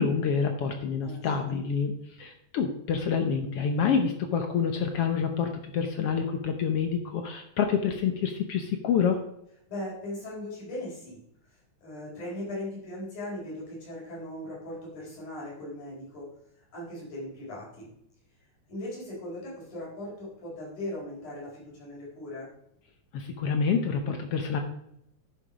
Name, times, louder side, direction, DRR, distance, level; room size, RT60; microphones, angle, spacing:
voice 1, 0.0-1.9 2.2-9.2 23.1-24.6, left 6 dB, 65° left, 5 dB, 1.6 m, -27 dB
voice 2, 9.7-17.9 18.7-22.5, left 1 dB, 85° left, -5 dB, 5.5 m, -39 dB
10.5 x 7.2 x 4.9 m, 0.75 s
omnidirectional pair, 3.4 m